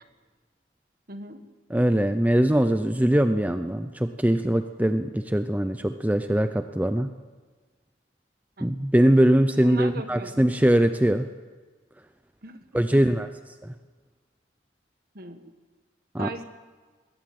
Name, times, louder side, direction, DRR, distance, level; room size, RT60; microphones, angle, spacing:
voice 1, 1.1-1.4 8.6-8.7 9.6-10.4 12.4-12.6 12.9-13.0 15.1-15.4 16.2-16.4, right 2 dB, 50° right, 8 dB, 1.7 m, -38 dB
voice 2, 1.7-7.1 8.6-11.3 12.7-13.3 13.6-13.7 16.1-16.3, right 1 dB, 10° right, 9 dB, 0.5 m, -22 dB
21.0 x 17.5 x 7.7 m, 1.4 s
head